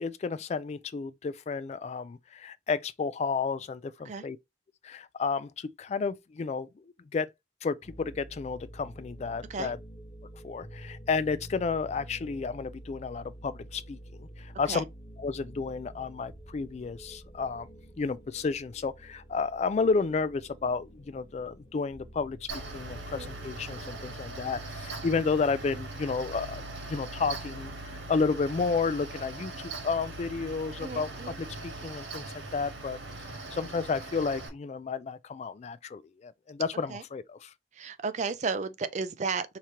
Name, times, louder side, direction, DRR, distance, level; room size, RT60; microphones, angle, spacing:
voice 1, 0.0-4.4 4.8-6.8 7.1-7.3 7.6-9.8 10.4-14.8 15.2-17.7 18.0-31.1 31.4-32.2 32.5-33.0 33.5-37.5, left 4 dB, 40° left, 0.3 m, -32 dB
sound 1, 7.8-24.2, right 1 dB, 20° left, 1.1 m, -48 dB
Mechanical fan, 22.5-34.5, right 2 dB, 70° right, 1.4 m, -40 dB
voice 2, 30.8-31.4 36.9-37.0 37.7-39.6, right 4 dB, 40° right, 0.5 m, -33 dB
4.9 x 2.9 x 2.9 m
head